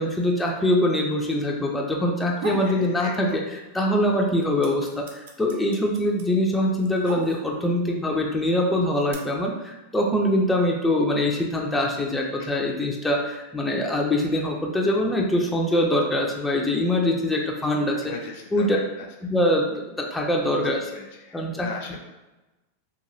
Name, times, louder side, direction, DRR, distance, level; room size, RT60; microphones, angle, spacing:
voice 1, 0.0-18.1 18.5-18.8 19.2-21.0 21.3-21.7, left 1 dB, 10° left, -1 dB, 0.4 m, -23 dB
sound 1, 2.1-2.8 3.2-3.9 4.1-7.7 8.5-9.1, right 4 dB, 65° right, 0.5 m, -36 dB
voice 2, 2.6-3.4 18.0-18.7 20.5-20.6 20.9-22.0, left 5 dB, 60° left, 2 dB, 0.5 m, -38 dB
3.0 x 2.2 x 2.6 m, 1.1 s
hypercardioid pair, 110°, 0 cm